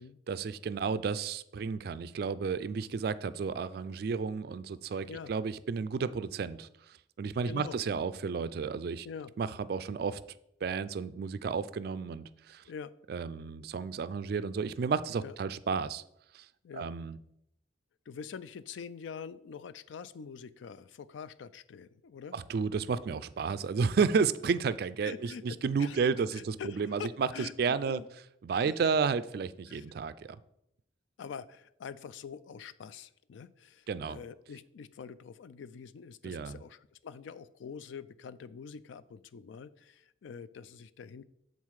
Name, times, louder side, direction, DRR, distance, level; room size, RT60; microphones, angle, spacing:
voice 1, 0.3-6.7 7.2-9.1 9.4-10.2 10.6-12.6 13.1-16.0 16.3-16.5 16.8-17.2 22.3-27.3 27.6-28.0 28.4-30.4 33.9-34.2 36.2-36.6, right 5 dB, 55° right, 15 dB, 0.3 m, -32 dB
voice 2, 4.9-5.3 7.4-7.8 9.0-9.3 12.6-12.9 15.2-15.4 16.6-16.9 18.1-22.4 25.0-28.0 28.5-28.8 29.7-29.9 31.2-41.2, left 6 dB, 80° left, 15 dB, 0.4 m, -45 dB
7.4 x 4.0 x 4.7 m, 0.77 s
head